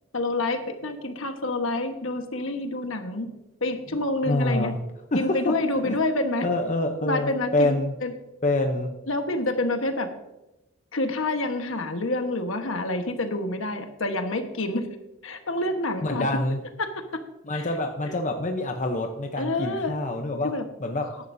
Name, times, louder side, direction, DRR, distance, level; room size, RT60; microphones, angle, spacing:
voice 1, 0.1-3.3 3.6-4.7 5.1-6.5 7.0-8.1 9.1-10.1 10.9-14.9 15.2-16.3 16.8-17.2 17.5-17.7 18.0-18.1 19.4-20.0 20.4-20.6, left 2 dB, 65° left, 6 dB, 1.3 m, -28 dB
voice 2, 4.3-4.8 5.1-5.6 5.8-6.0 6.4-8.0 8.4-9.0 16.0-16.6 17.4-20.5 20.8-21.2, left 2 dB, 35° left, 4 dB, 0.8 m, -26 dB
15.0 x 11.0 x 2.7 m, 0.95 s
head